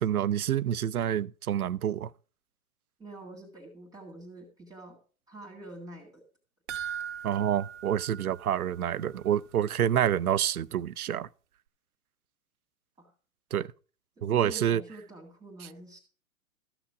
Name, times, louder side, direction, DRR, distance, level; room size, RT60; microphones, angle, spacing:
voice 1, 0.0-2.1 7.2-11.3 13.5-13.7 14.2-14.8, right 10 dB, 90° right, 0.5 m, -27 dB
voice 2, 3.0-5.0 5.3-6.2 13.0-13.1 14.2-16.0, right 1 dB, 10° right, 2.0 m, -46 dB
sound 1, 6.7-9.2 9.5-9.6 10.0-10.1, right 9 dB, 55° right, 0.8 m, -40 dB
13.5 x 5.9 x 4.8 m
hypercardioid pair, 120°, 42 cm